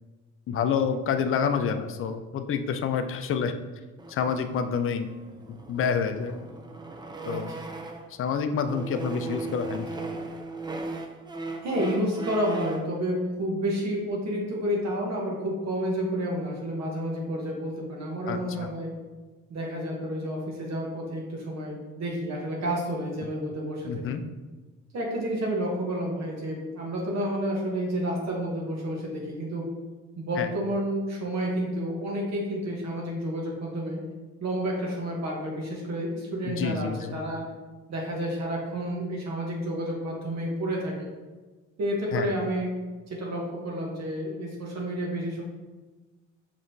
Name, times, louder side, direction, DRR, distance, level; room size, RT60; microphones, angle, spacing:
voice 1, 0.5-3.5 4.1-5.1 5.5-6.4 7.3-7.5 8.1-9.9 18.3-18.4 23.9-24.2 30.4-30.5 36.5-37.2 42.1-42.3, left 6 dB, 45° left, 8 dB, 0.4 m, -28 dB
sound 1, 4.0-8.2 8.6-12.9, right 3 dB, 15° right, 0.4 m, -38 dB
voice 2, 11.6-18.9 19.5-24.0 24.9-29.7 30.2-34.0 34.4-37.4 37.9-41.1 41.8-42.8 43.1-45.4, equal, 60° right, -2 dB, 1.0 m, -30 dB
4.9 x 3.1 x 2.7 m, 1.3 s
cardioid pair, 90°, 30 cm